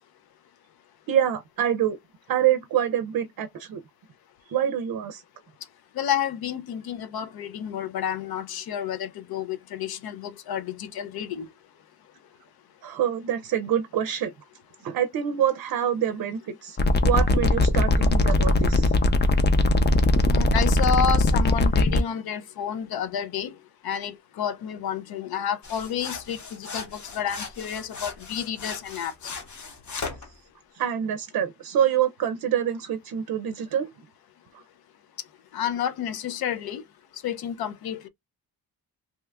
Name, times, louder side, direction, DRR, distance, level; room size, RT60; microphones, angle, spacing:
voice 1, 1.1-2.0 2.3-3.8 4.5-5.2 12.8-14.3 14.8-16.8 17.0-18.9 30.7-33.9, right 9 dB, 65° right, 0.5 m, -26 dB
voice 2, 6.0-11.5 20.3-23.5 23.8-29.1 35.5-36.8 37.2-38.1, left 8 dB, 75° left, 0.6 m, -30 dB
sound 1, 16.8-22.0, left 2 dB, 30° left, 0.4 m, -20 dB
sound 2, 25.6-30.3, left 4 dB, 50° left, 1.0 m, -38 dB
2.9 x 2.3 x 3.4 m
wide cardioid pair, 150°, 37 cm